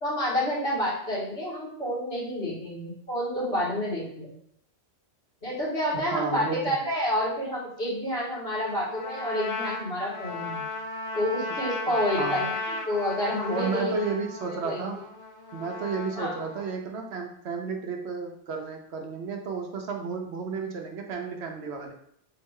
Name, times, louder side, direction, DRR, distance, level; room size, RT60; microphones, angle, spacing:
voice 1, 0.0-4.3 5.4-10.6 11.1-13.9 14.5-14.8 16.2-16.4, equal, 55° left, -9 dB, 2.1 m, -29 dB
voice 2, 5.9-6.7 11.9-12.4 13.5-15.0 15.5-21.9, right 5 dB, 70° right, 3 dB, 0.8 m, -32 dB
Trumpet, 8.7-16.8, left 3 dB, 80° left, 1.1 m, -35 dB
3.7 x 3.1 x 3.5 m, 0.70 s
omnidirectional pair, 1.2 m